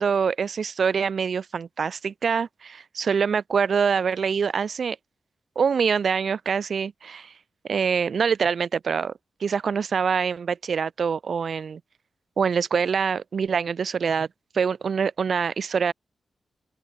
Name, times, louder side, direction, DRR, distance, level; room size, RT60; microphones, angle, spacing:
voice 1, 0.0-5.0 5.6-7.3 7.7-9.1 9.4-11.8 12.4-14.3 14.5-15.9, right 6 dB, 50° right, 0.7 m, -25 dB
open air
wide cardioid pair, 170°, 0 cm